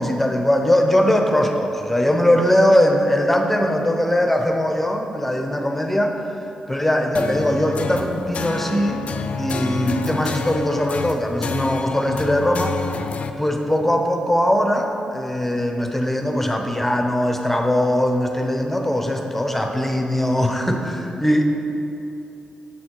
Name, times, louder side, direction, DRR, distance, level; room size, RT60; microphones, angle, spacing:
voice 1, 0.0-6.2 6.7-9.0 9.4-12.8 13.4-21.4, left 1 dB, 10° left, 3 dB, 0.7 m, -20 dB
sound 1, 7.1-13.3, left 4 dB, 60° left, 0.4 m, -28 dB
7.5 x 4.2 x 4.6 m, 2.9 s
supercardioid pair, 50°, 3 cm